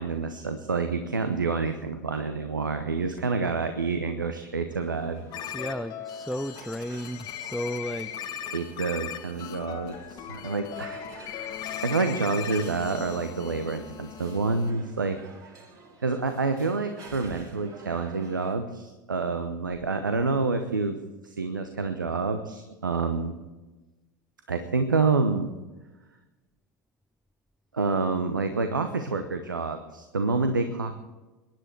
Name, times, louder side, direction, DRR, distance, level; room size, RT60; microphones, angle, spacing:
voice 1, 0.0-5.3 8.4-15.2 16.0-23.4 24.5-25.5 27.7-30.9, right 4 dB, 85° right, 8 dB, 0.9 m, -28 dB
sound 1, 4.7-18.6, right 2 dB, 35° right, 2.4 m, -50 dB
sound 2, 5.3-14.7, left 10 dB, 40° left, 1.3 m, -38 dB
voice 2, 5.5-8.1, equal, ahead, 8 dB, 0.4 m, -33 dB
22.5 x 10.5 x 4.5 m, 1.2 s
figure-of-eight pair, 85°, 10 cm